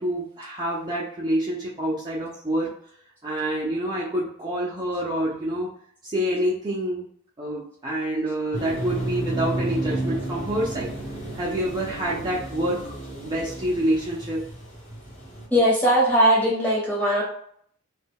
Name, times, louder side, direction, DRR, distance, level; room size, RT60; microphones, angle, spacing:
voice 1, 0.0-2.7 3.2-5.7 6.0-7.1 7.4-12.8 13.2-14.5, right 1 dB, 20° right, -5 dB, 0.4 m, -27 dB
sound 1, 8.5-15.5, right 1 dB, 35° left, 0.9 m, -32 dB
voice 2, 15.5-17.2, equal, 10° left, -4 dB, 0.9 m, -19 dB
2.2 x 2.1 x 3.4 m, 0.65 s
head